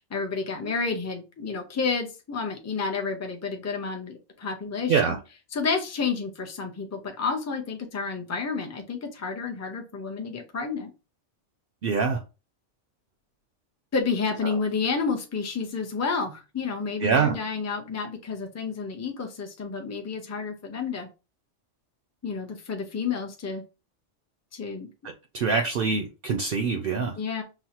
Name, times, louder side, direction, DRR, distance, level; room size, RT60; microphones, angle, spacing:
voice 1, 0.0-5.2 5.5-10.9 13.9-21.1 22.2-23.6 24.5-24.9 27.2-27.4, left 5 dB, 20° left, 0.5 m, -30 dB
voice 2, 11.8-12.2 17.0-17.4 25.3-27.1, right 5 dB, 60° right, 0.6 m, -24 dB
6.0 x 2.0 x 2.8 m
omnidirectional pair, 1.3 m